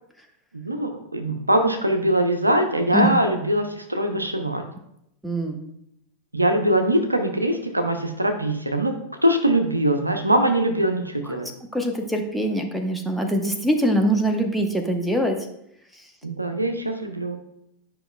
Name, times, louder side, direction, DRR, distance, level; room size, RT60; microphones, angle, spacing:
voice 1, 0.5-4.6 6.3-8.9 9.2-11.5 16.2-17.4, right 1 dB, 85° right, 5 dB, 0.7 m, -22 dB
voice 2, 5.2-5.7 11.7-15.4, right 1 dB, ahead, 3 dB, 0.9 m, -23 dB
9.9 x 5.3 x 2.3 m, 0.78 s
figure-of-eight pair, 90°, 0 cm